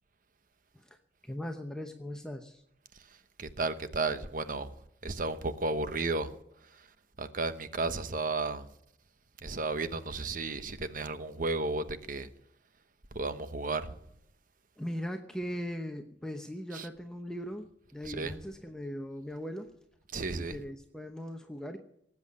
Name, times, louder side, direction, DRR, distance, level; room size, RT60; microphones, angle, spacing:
voice 1, 1.2-2.6 14.8-19.7 20.4-21.8, equal, 5° left, 0.8 m, -39 dB
voice 2, 3.4-4.7 5.0-6.3 7.2-8.7 9.4-12.3 13.1-13.9 16.7-16.9 18.0-18.3 20.1-20.6, right 3 dB, 50° right, 1.0 m, -33 dB
18.5 x 8.4 x 8.5 m
head